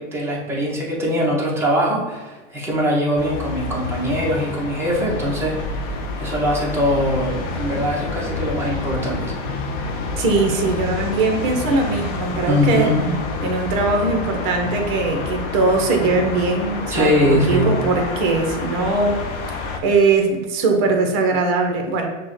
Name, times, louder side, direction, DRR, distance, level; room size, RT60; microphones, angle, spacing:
voice 1, 0.0-5.8 6.2-9.2 12.5-13.0 16.9-17.7, equal, 5° right, -5 dB, 0.8 m, -21 dB
sound 1, 3.2-19.8, left 3 dB, 30° left, 0.4 m, -28 dB
voice 2, 10.2-12.9 13.4-19.6 19.8-22.1, right 3 dB, 30° right, 3 dB, 0.7 m, -20 dB
5.9 x 2.2 x 3.1 m, 1.2 s
hypercardioid pair, 135°, 39 cm